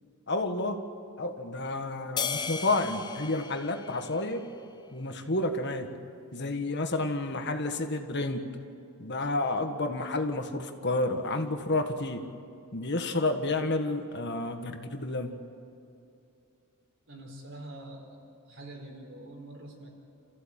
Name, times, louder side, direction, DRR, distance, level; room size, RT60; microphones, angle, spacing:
voice 1, 0.3-0.8 1.2-4.5 4.9-5.9 6.3-8.4 9.0-12.2 12.7-15.4, left 2 dB, 50° left, 6 dB, 1.6 m, -30 dB
sound 1, 2.2-4.8, left 5 dB, 20° left, 0.6 m, -36 dB
voice 2, 17.1-19.9, right 1 dB, 60° right, 1 dB, 4.6 m, -45 dB
29.0 x 15.0 x 8.9 m, 2.6 s
head